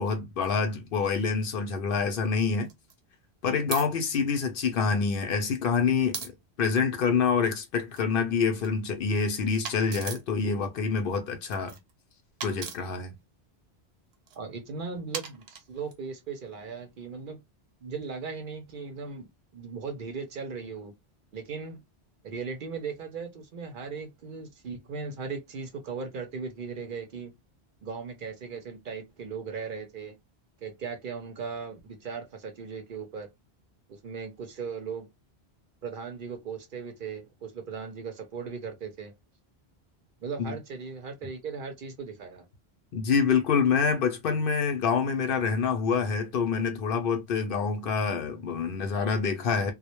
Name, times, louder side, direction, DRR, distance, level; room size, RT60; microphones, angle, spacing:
voice 1, 0.0-2.7 3.4-6.3 6.6-11.7 12.4-13.1 40.4-40.6 42.9-49.7, left 5 dB, 65° left, 0.7 m, -26 dB
sound 1, 1.4-1.5 2.6-2.9 3.7-3.9 5.0-5.3 6.1-6.3 7.8-8.7 9.6-10.3 11.4-11.9 12.4-12.8 14.1-14.4 15.1-16.0, right 6 dB, 80° right, 0.9 m, -38 dB
voice 2, 14.4-17.4 17.8-21.0 21.3-21.8 22.2-27.3 27.8-30.2 30.6-33.3 33.9-35.1 35.8-39.1 40.2-42.4, right 5 dB, 60° right, 0.7 m, -38 dB
2.2 x 2.1 x 2.8 m
omnidirectional pair, 1.1 m